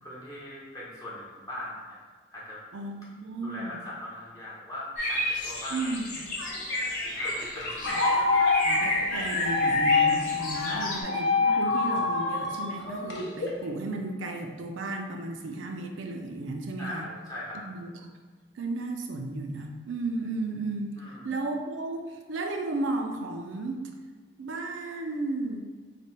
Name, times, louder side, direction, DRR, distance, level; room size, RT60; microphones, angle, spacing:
voice 1, 0.0-2.0 2.3-2.6 3.4-5.8 7.0-8.1 8.3-8.5 10.6-10.9 16.8-17.6 21.0-21.3, left 1 dB, 20° left, -6 dB, 0.6 m, -40 dB
voice 2, 2.7-3.8 5.7-6.2 8.6-17.0 17.6-17.9 18.6-21.0 21.2-23.9 24.4-25.6, right 2 dB, 80° right, 4 dB, 0.4 m, -34 dB
sound 1, 5.0-11.0, left 1 dB, 40° left, 1.0 m, -32 dB
sound 2, 6.1-13.7, left 3 dB, 65° left, 0.6 m, -26 dB
3.3 x 2.2 x 4.2 m, 1.5 s
head